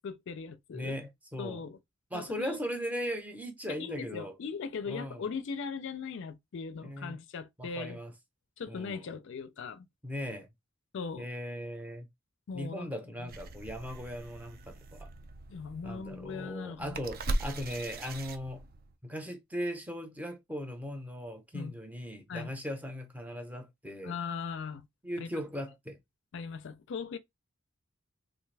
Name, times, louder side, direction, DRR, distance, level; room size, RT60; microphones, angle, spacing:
voice 1, 0.0-0.9 1.4-1.8 2.1-2.6 3.7-8.0 8.6-9.9 10.9-11.3 12.5-12.9 13.2-13.3 15.5-17.0 21.5-21.7 22.3-22.5 24.0-24.9 25.2-25.3 26.3-27.2, left 5 dB, 60° left, 0.4 m, -39 dB
voice 2, 0.7-1.6 2.1-4.4 4.9-5.3 6.8-7.2 7.6-8.1 8.7-9.1 10.0-10.5 11.2-12.1 12.5-15.1 15.8-18.6 19.0-24.2 25.0-26.0, equal, 10° right, 0.7 m, -38 dB
sound 1, 13.3-19.0, right 2 dB, 45° right, 0.5 m, -39 dB
3.2 x 2.5 x 3.3 m
head